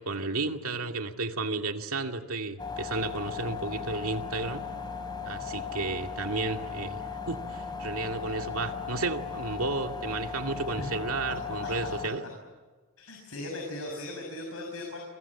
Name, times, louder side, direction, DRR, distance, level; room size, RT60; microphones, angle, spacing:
voice 1, 0.0-4.6 5.2-12.2, right 3 dB, 70° right, 4 dB, 2.3 m, -33 dB
sound 1, 2.6-12.1, left 6 dB, 20° left, 3.5 m, -37 dB
voice 2, 13.0-15.0, left 1 dB, 70° left, 2 dB, 6.6 m, -37 dB
29.0 x 24.0 x 7.3 m, 1.3 s
head